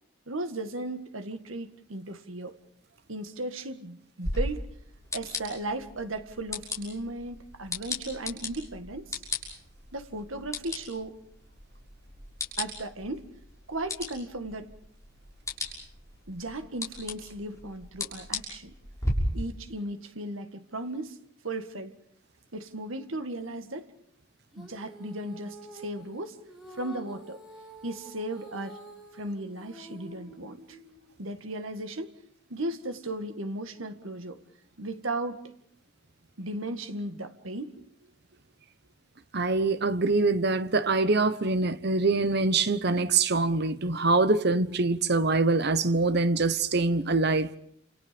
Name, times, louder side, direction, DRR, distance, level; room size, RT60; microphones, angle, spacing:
voice 1, 0.3-2.6 3.1-4.7 5.1-9.2 9.9-11.2 12.6-13.3 13.7-14.7 16.3-18.7 19.3-21.2 21.4-21.9 22.5-23.9 24.6-26.4 26.7-27.4 27.8-28.8 29.1-30.8 31.2-32.1 32.5-34.4 34.8-35.5 36.4-37.8, right 2 dB, 85° right, 1.9 m, -36 dB
sound 1, 4.2-19.1, left 2 dB, 15° left, 6.4 m, -38 dB
Female singing, 24.5-31.0, right 2 dB, ahead, 7.7 m, -48 dB
voice 2, 39.3-47.5, right 3 dB, 55° right, 1.2 m, -24 dB
29.5 x 28.0 x 5.3 m
head